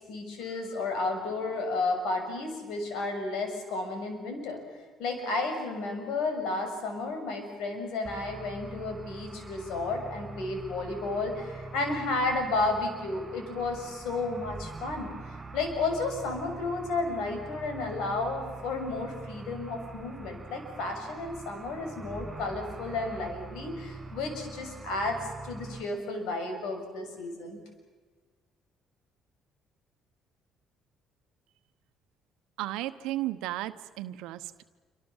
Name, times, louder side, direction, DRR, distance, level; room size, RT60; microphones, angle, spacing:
voice 1, 0.1-4.6 5.0-15.1 15.5-25.2 25.4-27.6, left 3 dB, 80° left, 5 dB, 6.6 m, -32 dB
sound 1, 8.0-25.8, right 3 dB, 20° right, 5.9 m, -44 dB
voice 2, 32.6-34.6, right 15 dB, 85° right, 11 dB, 1.1 m, -34 dB
27.5 x 25.5 x 7.3 m, 1.4 s
cardioid pair, 90°, 0 cm